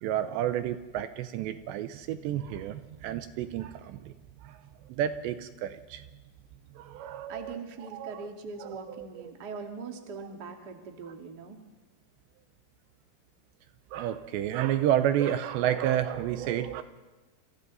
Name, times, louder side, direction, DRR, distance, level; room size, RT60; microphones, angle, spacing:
voice 1, 0.0-4.1 4.4-4.6 4.9-6.0 6.8-8.3 8.6-9.1 13.9-16.8, right 11 dB, 80° right, 10 dB, 2.8 m, -30 dB
voice 2, 7.0-11.6, right 4 dB, 40° right, 2 dB, 1.4 m, -41 dB
27.5 x 27.5 x 4.1 m, 1.2 s
omnidirectional pair, 5.4 m